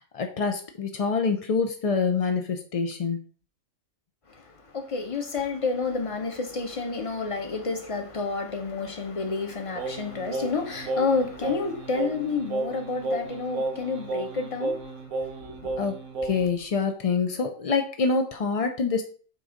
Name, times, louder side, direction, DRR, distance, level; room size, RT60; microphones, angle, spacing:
voice 1, 0.0-3.2 15.8-16.0 16.2-19.0, left 5 dB, 55° left, 0.4 m, -26 dB
voice 2, 4.3-15.0 15.4-15.8, left 4 dB, 30° left, 0.8 m, -30 dB
Singing, 9.7-16.6, right 2 dB, 75° right, 1.4 m, -33 dB
7.7 x 2.6 x 5.1 m
omnidirectional pair, 1.4 m